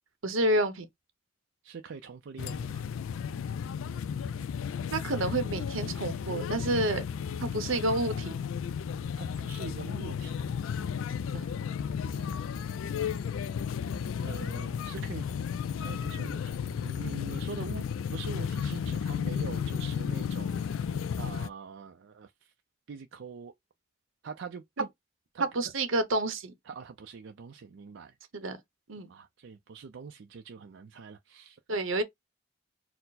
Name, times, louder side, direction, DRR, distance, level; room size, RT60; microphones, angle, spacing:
voice 1, 0.2-0.9 4.9-7.0 7.4-8.3 11.3-11.4 24.8-24.9 25.4-26.5 28.3-28.6 28.9-29.1 31.7-32.0, right 2 dB, 85° right, 0.9 m, -29 dB
voice 2, 1.6-2.8 9.2-10.4 12.1-12.4 14.2-15.3 15.8-17.8 18.1-22.3 22.9-23.5 24.2-24.9 25.3-25.5 26.7-28.1 29.1-31.6, right 5 dB, 65° right, 0.4 m, -44 dB
sound 1, 2.4-21.5, left 7 dB, 85° left, 0.3 m, -33 dB
4.4 x 2.0 x 4.0 m
head